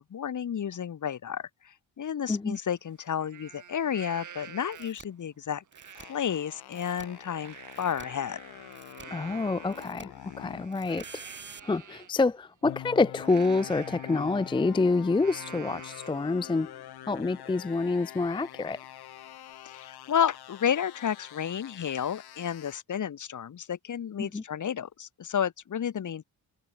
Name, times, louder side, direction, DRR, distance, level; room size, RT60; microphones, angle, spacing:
voice 1, 0.0-5.6 6.1-8.4 19.6-26.2, left 8 dB, 50° left, 2.5 m, -31 dB
Livestock farm animals working animals, 2.5-2.6 3.1-5.1 5.7-6.1 6.5-12.1 13.2-16.3 16.7-16.8 17.2-19.5, right 8 dB, 50° right, 4.8 m, -49 dB
sound 1, 4.7-5.0 5.7-6.0 6.7-7.0 7.7-8.0 8.7-9.0 9.7-10.0 10.7-11.6, right 4 dB, 30° right, 8.0 m, -48 dB
sound 2, 6.0-10.7 12.6-22.8, left 13 dB, 85° left, 4.5 m, -45 dB
voice 2, 9.1-11.2 11.6-16.7 17.0-18.8 24.2-24.4, left 3 dB, 15° left, 0.5 m, -27 dB
cardioid pair, 110°, 37 cm